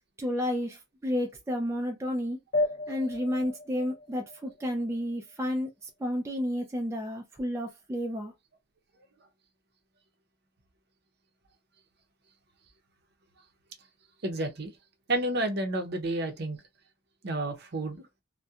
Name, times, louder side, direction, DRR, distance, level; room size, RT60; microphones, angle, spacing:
voice 1, 0.2-2.4 2.9-5.7 6.0-8.3, equal, 15° right, 0.4 m, -31 dB
sound 1, 2.5-5.5, left 2 dB, 60° left, 0.6 m, -34 dB
voice 2, 14.2-14.7 15.1-16.6 17.2-18.0, right 1 dB, 55° right, 0.6 m, -30 dB
2.7 x 2.1 x 2.3 m
head